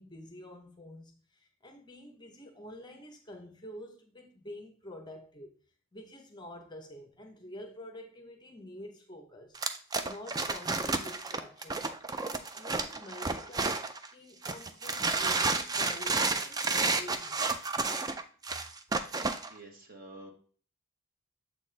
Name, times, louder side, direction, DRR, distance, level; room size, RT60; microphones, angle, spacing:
voice 1, 0.0-5.5 5.9-9.6 10.0-11.8 12.2-17.5, left 1 dB, 20° left, 0.7 m, -48 dB
sound 1, 9.6-14.1 14.4-19.5, right 3 dB, 15° right, 0.3 m, -31 dB
voice 2, 19.5-20.3, right 2 dB, 40° right, 1.1 m, -48 dB
7.1 x 4.1 x 3.2 m
head